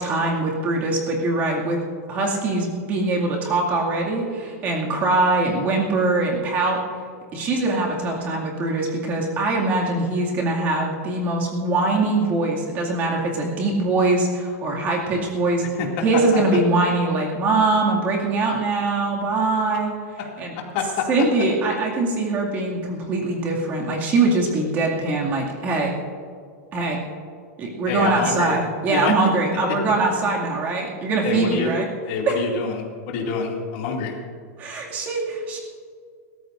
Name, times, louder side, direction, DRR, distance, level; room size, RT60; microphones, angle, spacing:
voice 1, 0.0-1.8 2.1-6.8 7.3-15.6 16.0-19.9 20.4-20.5 21.1-25.9 26.7-27.0 27.6-31.9 32.2-32.4 34.6-35.6, right 2 dB, 20° right, -2 dB, 2.3 m, -22 dB
voice 2, 20.2-21.1 27.8-28.6 28.9-29.1 31.2-31.7 32.1-34.1, left 5 dB, 35° left, -1 dB, 2.5 m, -27 dB
27.5 x 14.5 x 2.6 m, 2.1 s
supercardioid pair, 180°, 9 cm